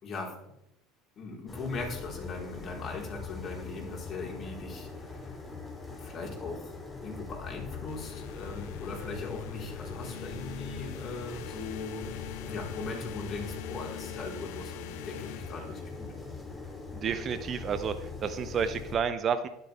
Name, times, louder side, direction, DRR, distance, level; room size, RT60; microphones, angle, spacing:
voice 1, 1.2-5.4 6.0-6.7 7.0-12.1 12.4-16.1, left 3 dB, 40° left, -1 dB, 4.1 m, -39 dB
sound 1, 1.5-19.0, left 4 dB, 15° left, 3.1 m, -42 dB
sound 2, 7.9-16.2, left 11 dB, 65° left, 0.6 m, -44 dB
voice 2, 16.9-19.5, right 7 dB, 40° right, 11 dB, 0.9 m, -30 dB
13.0 x 11.5 x 3.5 m, 0.80 s
figure-of-eight pair, 70°, 0 cm